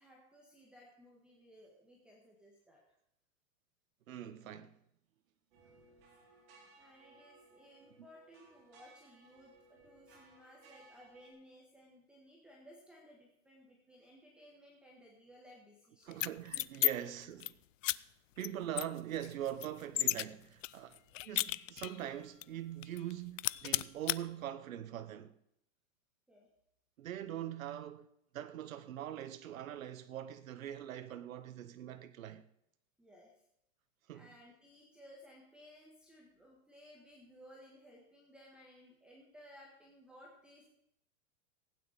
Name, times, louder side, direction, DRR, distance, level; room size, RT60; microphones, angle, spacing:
voice 1, 0.0-2.8 6.8-16.2 16.9-17.3 26.3-26.5 33.0-33.3 34.1-40.7, equal, ahead, 1.5 m, -59 dB
voice 2, 4.1-4.8 8.0-8.1 16.0-17.4 18.4-25.4 27.0-28.1 28.3-32.5 34.1-34.3, right 11 dB, 85° right, 1.0 m, -43 dB
sound 1, 5.5-11.3, right 3 dB, 45° right, 4.3 m, -62 dB
sound 2, 16.1-16.9 17.2-17.5 17.8-18.0 18.4-18.5 18.8-20.2 20.6-22.0 22.4-22.5 22.8-23.1 23.4-24.2, left 15 dB, 70° left, 0.5 m, -33 dB
15.5 x 9.4 x 5.2 m
supercardioid pair, 165°, 39 cm